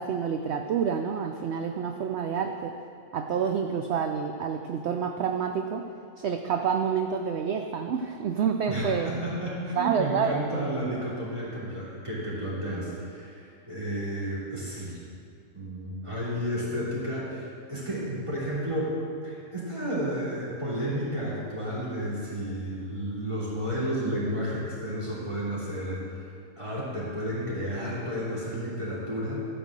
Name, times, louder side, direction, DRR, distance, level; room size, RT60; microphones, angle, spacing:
voice 1, 0.0-2.7 3.1-5.9 6.2-9.1 9.8-10.4, right 7 dB, 65° right, 5 dB, 0.7 m, -28 dB
voice 2, 8.7-15.0 15.5-19.0 19.2-26.2 26.6-29.5, equal, 20° right, -8 dB, 3.1 m, -32 dB
12.5 x 5.2 x 7.4 m, 2.3 s
omnidirectional pair, 1.5 m